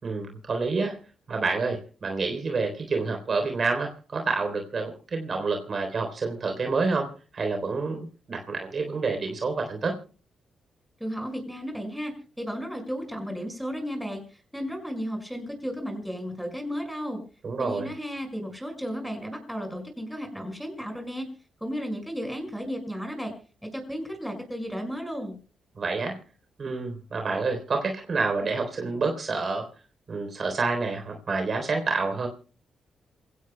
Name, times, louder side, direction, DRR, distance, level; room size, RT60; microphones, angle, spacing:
voice 1, 0.0-1.0 1.3-10.0 17.4-17.9 25.8-26.2 26.6-29.7 30.1-32.3, right 4 dB, 50° right, 5 dB, 3.6 m, -28 dB
voice 2, 11.0-17.2 17.6-21.3 21.6-23.3 23.6-25.4, equal, ahead, 4 dB, 5.5 m, -34 dB
27.0 x 16.5 x 2.2 m, 0.37 s
cardioid pair, 70°, 0 cm